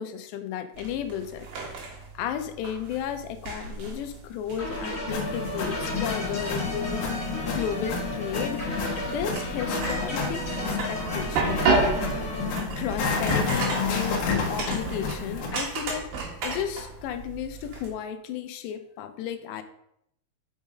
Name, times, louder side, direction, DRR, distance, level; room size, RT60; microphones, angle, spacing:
voice 1, 0.0-1.5 2.1-8.7 9.1-12.3 12.8-16.1 16.4-19.6, left 9 dB, 80° left, 8 dB, 2.7 m, -34 dB
sound 1, 0.7-17.9, right 3 dB, 60° right, 2.9 m, -33 dB
sound 2, 4.6-12.6, left 1 dB, 50° left, 0.9 m, -33 dB
sound 3, 5.1-15.5, left 5 dB, 65° left, 2.3 m, -31 dB
6.4 x 5.2 x 5.0 m, 0.74 s
omnidirectional pair, 5.2 m